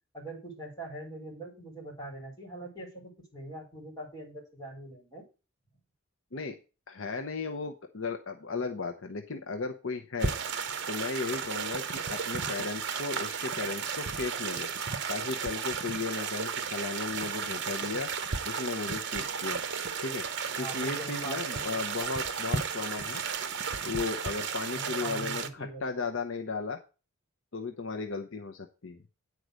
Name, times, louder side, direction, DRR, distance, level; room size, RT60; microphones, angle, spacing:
voice 1, 0.1-5.2 20.6-21.8 24.7-25.8, right 1 dB, 20° left, -2 dB, 4.2 m, -42 dB
voice 2, 6.9-10.3 10.9-14.7 15.1-18.1 18.4-19.6 20.0-20.3 20.6-23.2 23.8-26.8 27.5-29.0, left 4 dB, 60° left, 4 dB, 0.8 m, -35 dB
sound 1, 10.2-25.5, right 6 dB, 55° right, 1.0 m, -34 dB
9.5 x 4.8 x 6.4 m, 0.31 s
head